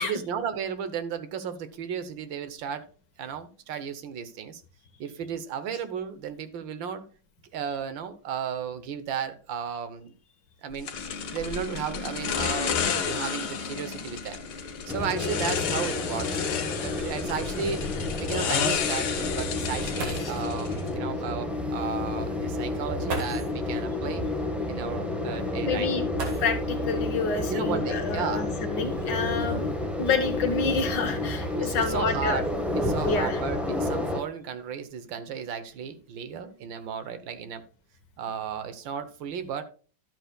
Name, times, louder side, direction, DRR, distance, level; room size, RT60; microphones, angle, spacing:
voice 1, 0.0-2.9 3.2-4.6 5.0-7.0 7.5-10.1 10.6-10.9 11.3-14.4 14.9-16.4 16.8-17.9 18.2-24.2 24.7-25.9 27.5-28.5 31.5-32.5 32.7-37.6 38.2-39.6, right 7 dB, 70° right, 11 dB, 1.6 m, -34 dB
sound 1, 10.9-20.9, left 7 dB, 85° left, 1.9 m, -31 dB
sound 2, 14.9-34.2, left 2 dB, ahead, 1.0 m, -30 dB
sound 3, 20.0-20.5 21.8-21.9 23.0-23.6 26.1-26.9 28.3-28.4 29.1-30.5 31.2-31.6 32.0-32.4, right 3 dB, 85° right, 2.7 m, -38 dB
voice 2, 25.6-26.1 26.4-29.7 30.0-32.4 33.0-33.4, left 5 dB, 60° left, 7 dB, 1.8 m, -28 dB
12.0 x 7.9 x 2.3 m, 0.38 s
omnidirectional pair, 2.2 m